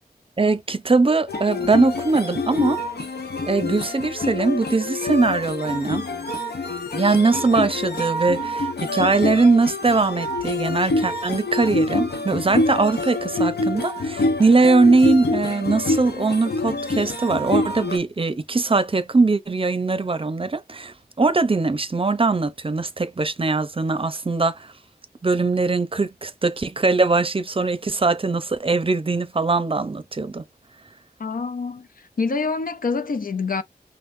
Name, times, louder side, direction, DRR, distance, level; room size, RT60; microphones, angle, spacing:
voice 1, 0.4-2.8 3.5-6.1 6.9-24.7 25.2-30.4, right 3 dB, 35° right, 0.6 m, -21 dB
sound 1, 1.3-18.0, left 2 dB, 80° left, 1.0 m, -26 dB
voice 2, 31.2-33.6, left 4 dB, 60° left, 0.6 m, -26 dB
5.6 x 2.1 x 2.6 m
wide cardioid pair, 85°, 16 cm